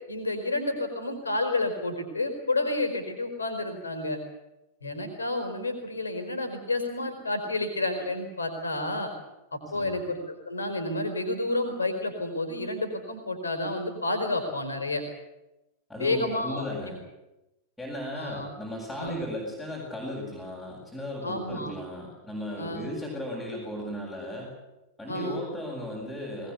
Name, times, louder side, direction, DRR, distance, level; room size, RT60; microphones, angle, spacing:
voice 1, 0.1-4.2 4.8-9.1 9.5-15.0 16.0-16.6 18.1-18.5 19.0-19.2 21.2-21.7 22.6-22.9 25.1-25.4, left 2 dB, 75° left, 6 dB, 4.6 m, -30 dB
voice 2, 15.9-17.0 17.8-24.5 25.0-26.5, left 1 dB, 5° left, -7 dB, 7.9 m, -36 dB
21.0 x 20.0 x 8.3 m, 0.96 s
figure-of-eight pair, 90°, 0 cm